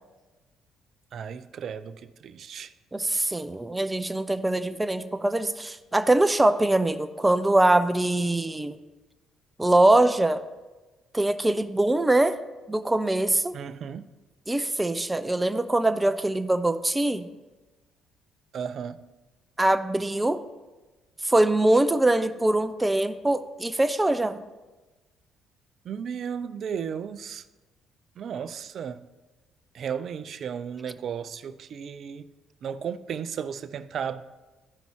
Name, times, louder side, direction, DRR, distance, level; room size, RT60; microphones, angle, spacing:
voice 1, 1.1-2.7 13.5-14.1 18.5-19.0 25.8-27.4 28.2-29.0 29.7-32.3 32.6-34.2, right 7 dB, 60° right, 14 dB, 0.4 m, -34 dB
voice 2, 2.9-8.8 9.6-10.4 11.1-12.4 12.7-13.6 14.5-17.3 19.6-20.4 21.2-24.4, right 1 dB, 15° right, 11 dB, 0.6 m, -23 dB
14.0 x 5.3 x 3.1 m, 1.2 s
hypercardioid pair, 55°, 0 cm